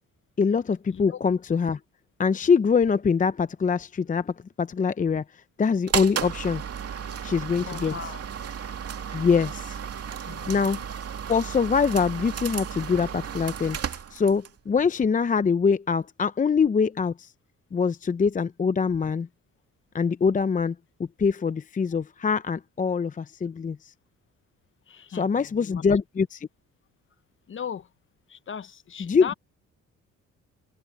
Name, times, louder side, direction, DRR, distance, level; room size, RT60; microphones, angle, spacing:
voice 1, 0.4-1.8 2.2-5.2 5.6-6.6 7.2-7.9 9.1-9.8 10.5-10.8 11.3-17.3 17.7-19.3 19.9-20.8 21.2-23.9 25.1-26.5 29.0-29.3, left 5 dB, 25° left, 0.6 m, -24 dB
sound 1, 5.9-14.6, right 8 dB, 55° right, 2.4 m, -34 dB
voice 2, 7.7-8.2 10.2-10.7 24.9-25.9 27.5-27.9 28.3-29.3, left 8 dB, 40° left, 0.9 m, -38 dB
cardioid pair, 90°, 30 cm